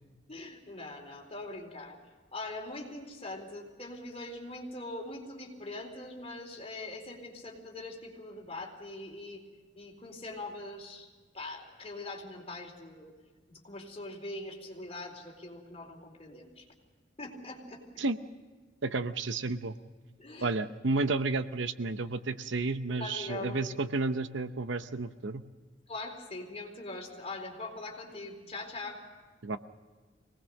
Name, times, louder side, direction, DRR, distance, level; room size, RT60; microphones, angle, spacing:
voice 1, 0.3-2.0 2.3-9.4 9.8-11.1 11.3-13.1 13.5-16.7 17.2-17.8 20.2-20.5 22.9-23.8 25.9-29.0, left 2 dB, 35° left, 1 dB, 4.2 m, -42 dB
voice 2, 18.8-19.8 20.4-25.4 29.4-29.6, right 3 dB, 70° right, 11 dB, 0.8 m, -31 dB
25.0 x 19.5 x 6.5 m, 1.4 s
head